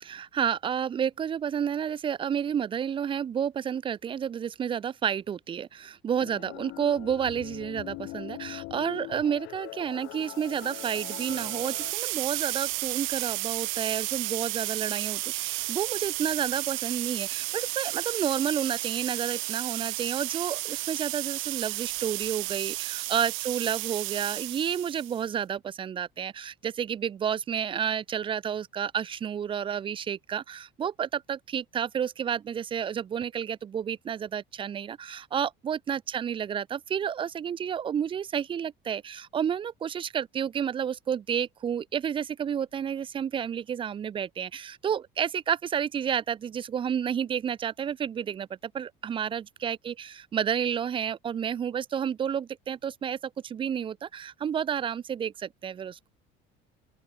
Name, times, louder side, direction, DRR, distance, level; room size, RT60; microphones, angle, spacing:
voice 1, 0.0-56.1, right 8 dB, 25° right, 1.3 m, -30 dB
sound 1, 6.2-11.9, left 23 dB, 65° left, 1.9 m, -42 dB
sound 2, 10.3-25.2, right 24 dB, 70° right, 4.8 m, -33 dB
open air
cardioid pair, 180°, 21 cm